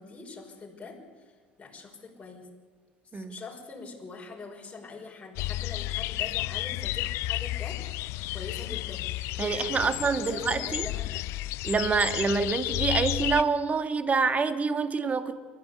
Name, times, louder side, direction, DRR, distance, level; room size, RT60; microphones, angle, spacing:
voice 1, 0.0-2.5 3.1-11.2, left 4 dB, 20° left, -1 dB, 6.0 m, -43 dB
sound 1, 5.4-13.4, left 18 dB, 60° left, 0.6 m, -32 dB
voice 2, 9.4-10.9 11.6-15.4, right 4 dB, 25° right, 9 dB, 2.1 m, -26 dB
29.5 x 14.5 x 8.5 m, 1.5 s
hypercardioid pair, 70°, 5 cm